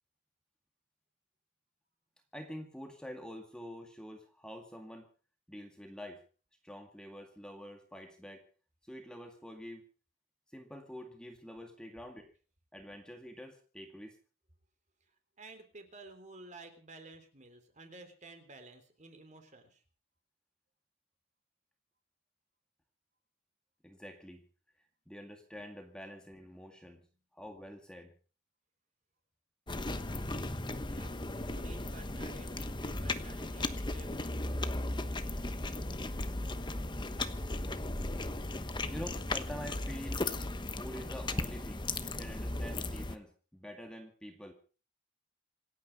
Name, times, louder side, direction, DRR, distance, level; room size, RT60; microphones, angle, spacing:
voice 1, 2.3-5.1 5.5-6.2 6.6-8.4 8.8-9.9 10.5-12.3 12.7-14.2 23.8-24.4 25.1-27.0 27.3-28.1 38.9-40.3 40.8-41.9 42.2-44.5, equal, 5° left, 4 dB, 2.0 m, -47 dB
voice 2, 15.0-19.8 30.7-34.3, right 2 dB, 35° right, 7 dB, 3.5 m, -53 dB
sound 1, 29.7-43.2, left 2 dB, 20° left, 1.1 m, -36 dB
27.0 x 9.5 x 5.4 m, 0.40 s
head